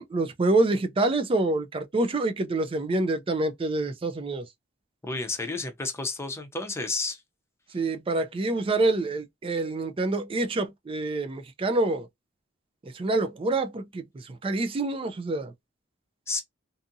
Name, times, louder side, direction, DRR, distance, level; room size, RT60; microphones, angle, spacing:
voice 1, 0.0-4.5 7.7-12.1 12.9-15.5, right 2 dB, 25° right, 0.4 m, -26 dB
voice 2, 5.0-7.2 16.3-16.4, left 3 dB, 15° left, 0.6 m, -31 dB
2.6 x 2.5 x 2.6 m
head